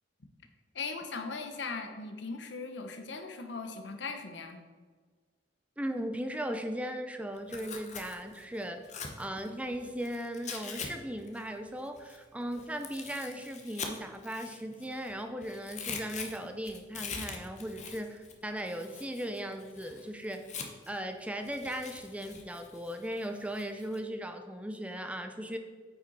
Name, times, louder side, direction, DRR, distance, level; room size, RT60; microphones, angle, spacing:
voice 1, 0.7-4.6, left 4 dB, 75° left, 6 dB, 1.0 m, -39 dB
voice 2, 5.8-20.5 20.9-25.6, equal, 5° right, 6 dB, 0.5 m, -37 dB
Tearing, 7.4-10.9 11.2-15.1 15.4-21.0 21.4-24.0, left 5 dB, 40° left, 0.9 m, -44 dB
8.8 x 5.5 x 4.1 m, 1.5 s
head